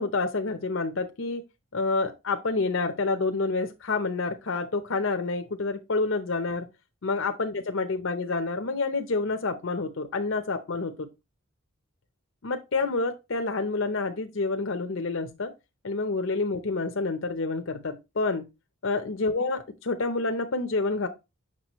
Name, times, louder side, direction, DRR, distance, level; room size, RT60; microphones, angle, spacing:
voice 1, 0.0-1.4 1.7-6.7 7.0-11.1 12.4-15.5 15.8-18.5 18.8-21.1, left 3 dB, 65° left, 0.7 m, -28 dB
7.5 x 6.0 x 3.0 m
head